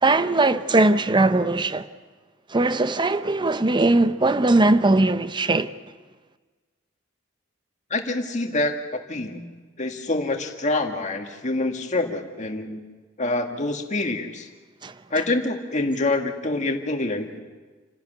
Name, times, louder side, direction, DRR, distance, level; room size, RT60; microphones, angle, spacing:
voice 1, 0.0-1.9 2.5-5.7 14.8-14.9, right 2 dB, 25° right, 0.7 m, -20 dB
voice 2, 7.9-8.8 9.1-9.5 9.8-12.8 13.2-14.5 15.1-17.4, left 2 dB, 40° left, 1.9 m, -26 dB
28.5 x 12.0 x 9.3 m
head